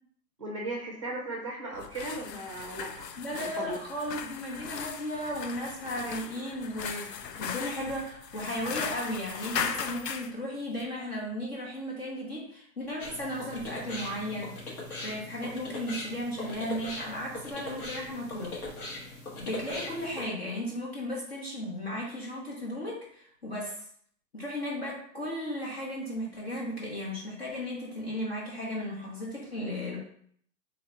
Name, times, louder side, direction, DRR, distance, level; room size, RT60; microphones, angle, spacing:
voice 1, 0.4-3.1 3.4-3.8, right 2 dB, 20° right, -1 dB, 0.6 m, -37 dB
sound 1, 1.7-10.3, left 7 dB, 75° left, 0.6 m, -38 dB
voice 2, 3.2-14.7 15.0-18.6 18.9-23.8 24.3-30.0, equal, 40° left, -4 dB, 0.9 m, -35 dB
sound 2, 13.0-20.2, left 2 dB, 60° left, 1.2 m, -40 dB
3.2 x 2.8 x 3.7 m, 0.63 s
hypercardioid pair, 170°, 50 cm